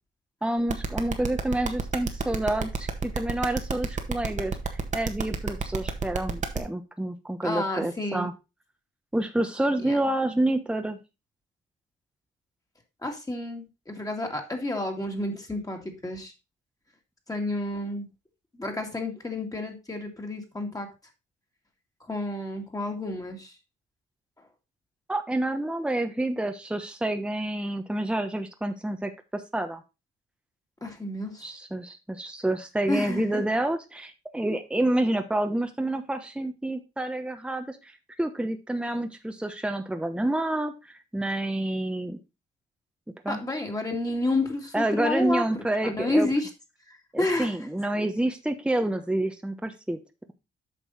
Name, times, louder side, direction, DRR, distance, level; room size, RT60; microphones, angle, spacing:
voice 1, 0.4-8.3 9.1-11.0 25.1-29.8 31.4-37.9 38.2-42.2 43.2-43.4 44.7-46.3 47.1-50.0, right 1 dB, 5° right, 7 dB, 1.1 m, -28 dB
sound 1, 0.7-6.6, right 5 dB, 40° right, 1.5 m, -29 dB
voice 2, 7.4-8.3 9.8-10.0 13.0-16.3 17.3-18.1 18.5-20.9 22.1-23.5 30.8-31.5 32.9-33.4 43.3-46.5 46.9-47.5, left 2 dB, 15° left, 2 dB, 2.3 m, -30 dB
8.5 x 5.5 x 4.1 m, 0.26 s
cardioid pair, 90°, 20 cm